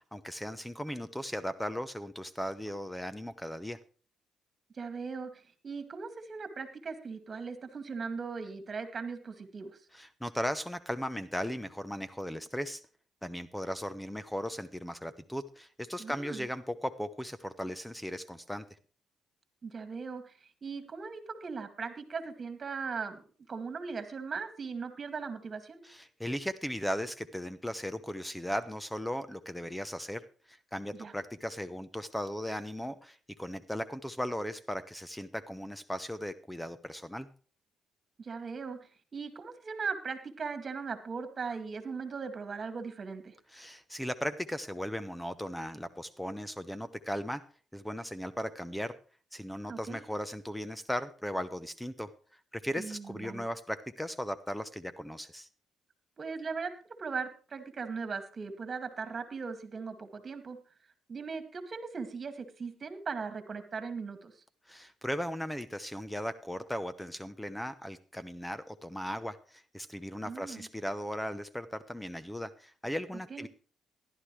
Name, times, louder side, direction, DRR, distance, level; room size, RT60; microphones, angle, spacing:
voice 1, 0.0-3.8 9.9-12.8 13.2-18.7 25.8-30.2 30.5-37.3 43.5-47.4 47.7-48.9 49.3-52.1 52.5-55.5 64.7-73.5, equal, 5° left, 13 dB, 0.8 m, -37 dB
voice 2, 4.7-9.7 16.0-16.5 19.6-20.3 20.6-25.8 30.9-31.1 38.2-43.3 49.7-50.0 52.8-53.4 56.2-56.7 57.0-60.6 61.1-64.4 70.2-70.7 73.3-73.5, right 5 dB, 40° right, 8 dB, 2.2 m, -39 dB
15.0 x 11.5 x 3.2 m, 0.39 s
cardioid pair, 90°, 0 cm